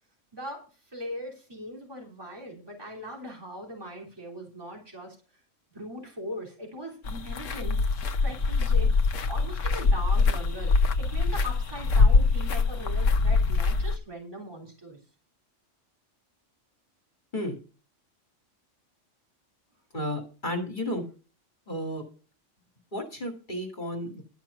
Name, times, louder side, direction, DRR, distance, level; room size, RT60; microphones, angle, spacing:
voice 1, 0.3-5.2 5.7-7.8 8.2-15.0, equal, 20° right, -1 dB, 3.4 m, -40 dB
sound 1, 7.0-14.0, left 4 dB, 85° left, 1.2 m, -24 dB
voice 2, 19.9-21.0 21.7-22.0 22.9-24.2, left 1 dB, 40° left, 3 dB, 2.3 m, -32 dB
12.0 x 6.0 x 6.8 m, 0.35 s
omnidirectional pair, 1.3 m